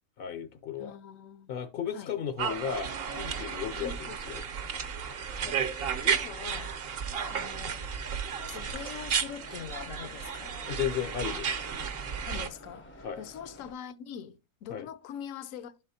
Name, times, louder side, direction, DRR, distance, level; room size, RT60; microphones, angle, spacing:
voice 1, 0.2-0.9 1.5-4.4 10.7-11.5 13.0-13.2 14.7-14.9, left 8 dB, 60° left, 0.6 m, -34 dB
voice 2, 0.8-1.6 1.9-2.2 3.8-4.2 5.4-5.7 6.0-6.8 7.2-7.9 8.4-10.6 12.3-15.7, left 8 dB, 80° left, 1.0 m, -43 dB
sound 1, 2.4-12.5, right 6 dB, 55° right, 0.8 m, -33 dB
sound 2, 8.6-13.7, equal, 15° left, 0.4 m, -50 dB
11.5 x 4.3 x 2.7 m
omnidirectional pair, 1.4 m